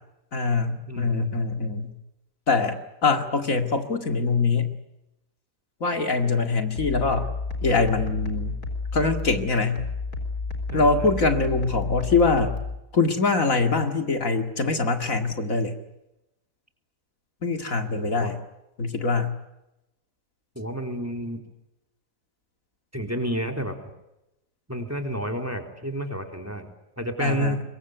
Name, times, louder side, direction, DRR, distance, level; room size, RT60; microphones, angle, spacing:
voice 1, 0.3-1.9 2.5-4.7 5.8-7.3 7.6-8.6 8.9-9.9 10.7-12.6 12.9-15.8 17.4-18.4 18.8-19.3 27.2-27.6, left 4 dB, 60° left, 6 dB, 2.5 m, -23 dB
voice 2, 0.9-1.4 10.7-11.1 17.9-18.3 20.6-21.4 22.9-23.8 24.7-27.6, right 1 dB, 10° right, 4 dB, 3.6 m, -31 dB
sound 1, 6.8-12.8, left 3 dB, 75° left, 4.6 m, -31 dB
24.5 x 23.5 x 9.4 m, 0.90 s
omnidirectional pair, 1.6 m